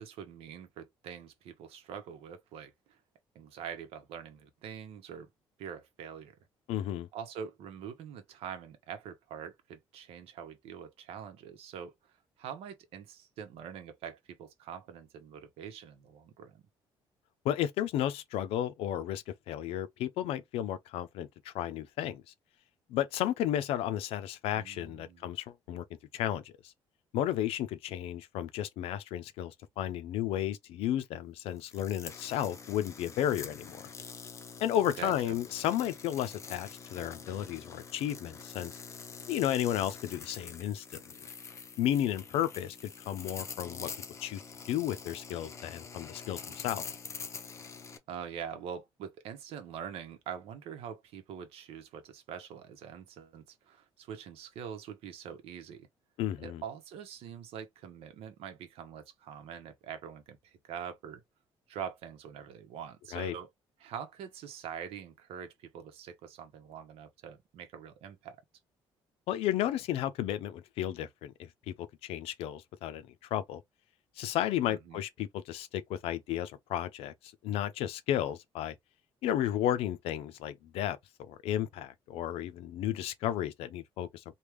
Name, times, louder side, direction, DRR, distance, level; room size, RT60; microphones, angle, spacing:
voice 1, 0.0-3.0 3.3-5.3 5.6-6.4 7.1-11.9 12.4-16.6 24.5-25.3 35.0-35.4 48.1-55.9 56.4-61.2 61.7-63.5 63.8-68.4 74.7-75.0, right 8 dB, 80° right, 0.9 m, -44 dB
voice 2, 6.7-7.1 17.4-22.2 22.9-25.8 26.1-26.4 27.1-33.8 34.6-38.8 39.3-40.8 41.8-43.9 44.2-44.4 44.7-46.8 56.2-56.6 63.1-63.3 69.3-73.6 74.2-77.1 77.4-78.7 79.2-84.2, left 11 dB, 85° left, 0.5 m, -33 dB
sound 1, 31.6-48.0, left 5 dB, 30° left, 0.6 m, -46 dB
3.4 x 2.3 x 3.1 m
cardioid pair, 130°, 10 cm